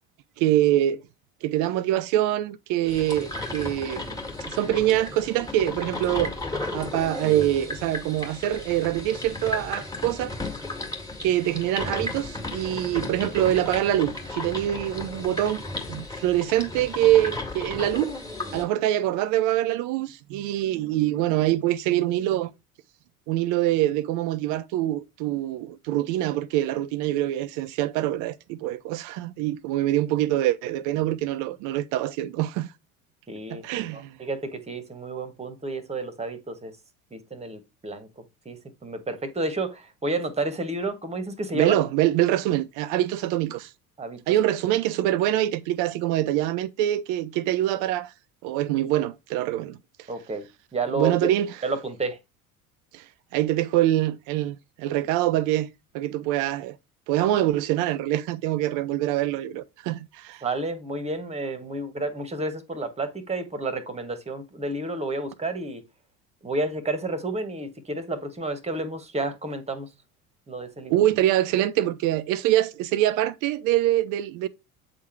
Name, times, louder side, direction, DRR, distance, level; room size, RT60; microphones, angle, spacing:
voice 1, 0.4-1.0 1.4-4.2 4.4-6.3 6.7-10.3 11.2-15.6 15.9-18.1 18.5-22.5 23.3-32.7 33.5-34.1 41.5-43.7 44.3-48.1 48.4-49.8 50.9-51.5 52.9-53.0 53.3-55.7 55.9-56.8 57.1-60.4 70.9-74.5, right 13 dB, 45° right, 0.7 m, -24 dB
sound 1, 2.8-18.6, left 2 dB, 10° left, 2.0 m, -34 dB
voice 2, 33.3-36.7 37.1-41.8 44.0-44.3 50.1-50.4 50.7-51.3 51.6-52.2 60.4-65.8 66.4-69.9 70.5-71.0, right 2 dB, 15° right, 1.4 m, -31 dB
8.4 x 3.7 x 4.5 m
figure-of-eight pair, 70°, 44 cm